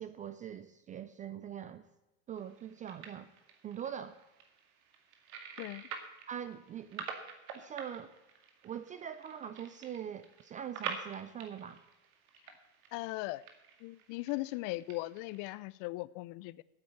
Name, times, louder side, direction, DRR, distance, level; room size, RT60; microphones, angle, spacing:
voice 1, 0.0-1.8 2.3-3.3 3.6-4.2 6.3-7.1 7.5-8.1 8.6-11.8, right 9 dB, 20° right, 12 dB, 0.3 m, -42 dB
sound 1, 2.4-15.6, right 7 dB, 75° right, 2.3 m, -48 dB
voice 2, 12.9-13.4 13.8-16.6, left 20 dB, 50° left, 19 dB, 0.5 m, -38 dB
8.8 x 8.5 x 9.2 m, 1.0 s
supercardioid pair, 125°, 43 cm